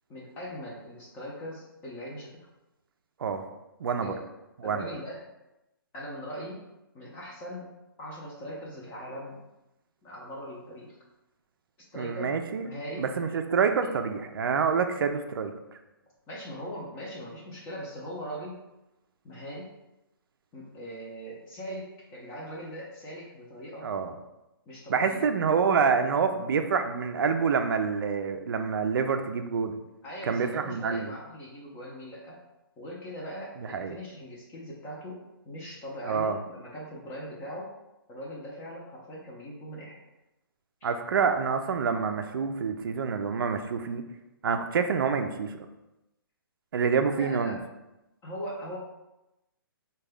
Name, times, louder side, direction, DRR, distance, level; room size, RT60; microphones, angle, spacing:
voice 1, 0.1-2.3 4.0-4.2 4.6-5.3 5.9-6.6 6.9-7.7 8.0-9.3 10.0-11.0 11.9-13.0 16.3-18.6 19.2-19.7 20.5-23.9 24.7-25.3 30.0-32.4 32.8-35.2 35.4-37.7 38.1-40.0 40.8-40.9 47.2-47.6 48.2-48.8, equal, 20° left, -4 dB, 0.6 m, -40 dB
voice 2, 3.8-4.1 4.6-4.8 12.0-12.7 13.0-15.5 23.8-24.1 24.9-29.8 30.3-31.1 33.6-34.0 36.1-36.4 40.8-44.0 44.4-45.6 46.7-47.6, right 6 dB, 70° right, 6 dB, 0.4 m, -27 dB
3.5 x 2.3 x 3.3 m, 0.95 s
hypercardioid pair, 145°, 12 cm